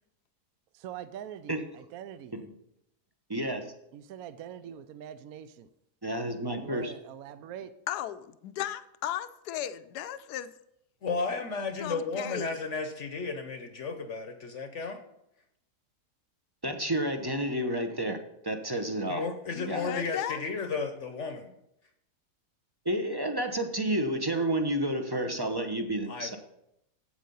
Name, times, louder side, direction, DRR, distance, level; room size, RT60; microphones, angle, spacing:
voice 1, 0.7-2.4 3.9-5.7 6.5-7.7 12.4-12.5, right 9 dB, 70° right, 13 dB, 1.0 m, -43 dB
voice 2, 3.3-3.7 6.0-6.9 16.6-18.2 18.4-19.2 19.7-19.8 22.8-26.4, right 1 dB, 25° right, 6 dB, 0.5 m, -30 dB
voice 3, 7.9-10.5 11.8-12.5 19.5-20.4, left 11 dB, 80° left, 13 dB, 1.2 m, -35 dB
voice 4, 11.0-15.0 19.1-21.5 26.1-26.4, left 4 dB, 55° left, 6 dB, 1.0 m, -33 dB
8.4 x 7.9 x 5.4 m, 0.79 s
omnidirectional pair, 1.7 m